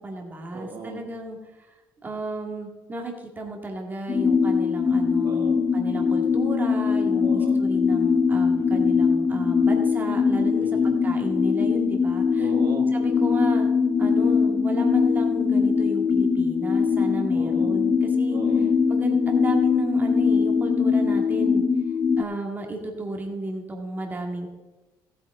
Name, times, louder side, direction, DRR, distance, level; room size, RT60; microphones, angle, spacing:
voice 1, 0.0-1.7 2.0-12.5 12.9-13.7 14.0-18.4 18.9-21.6 22.2-24.5, right 2 dB, 25° right, 2 dB, 2.1 m, -33 dB
voice 2, 0.5-1.1 5.2-5.7 7.2-7.6 8.5-8.9 10.6-11.0 12.4-13.0 17.3-17.8 18.3-18.7, right 4 dB, 55° right, 1 dB, 1.9 m, -38 dB
sound 1, 4.1-22.2, left 5 dB, 30° left, 0.6 m, -22 dB
14.5 x 9.1 x 3.8 m, 1.2 s
cardioid pair, 95°, 8 cm